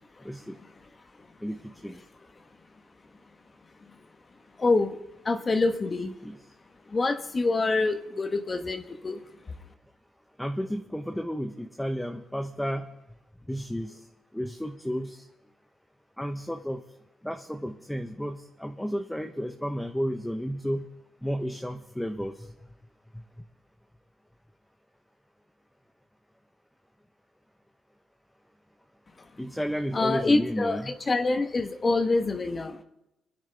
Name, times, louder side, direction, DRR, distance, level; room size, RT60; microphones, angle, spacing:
voice 1, 0.2-0.6 1.4-1.6 1.8-2.0 6.2-6.4 10.4-12.9 13.5-14.0 14.3-15.2 16.2-16.8 17.2-20.9 21.2-22.4 29.4-30.9, equal, 5° left, 5 dB, 0.9 m, -32 dB
voice 2, 4.6-5.0 5.2-6.2 6.9-9.2 29.9-32.8, left 3 dB, 30° left, 7 dB, 1.1 m, -26 dB
27.5 x 10.0 x 3.4 m, 0.90 s
cardioid pair, 90°, 0 cm